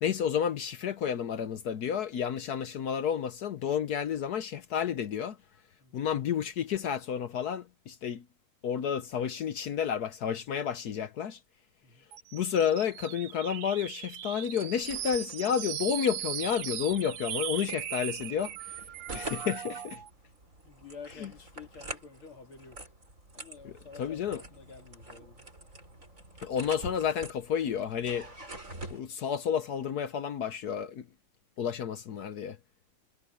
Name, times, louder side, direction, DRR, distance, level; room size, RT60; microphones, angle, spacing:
voice 1, 0.0-5.4 5.9-8.2 8.6-11.4 12.3-18.8 19.1-20.0 21.2-21.3 23.6-23.7 24.0-24.4 26.4-28.3 28.9-31.1 31.6-32.6, left 8 dB, 60° left, 1.1 m, -31 dB
sound 1, 12.1-20.1, right 12 dB, 70° right, 1.4 m, -38 dB
sound 2, 14.4-29.0, right 2 dB, 35° right, 6.0 m, -47 dB
voice 2, 20.6-22.9 23.3-25.5, left 5 dB, 85° left, 3.3 m, -50 dB
omnidirectional pair, 2.3 m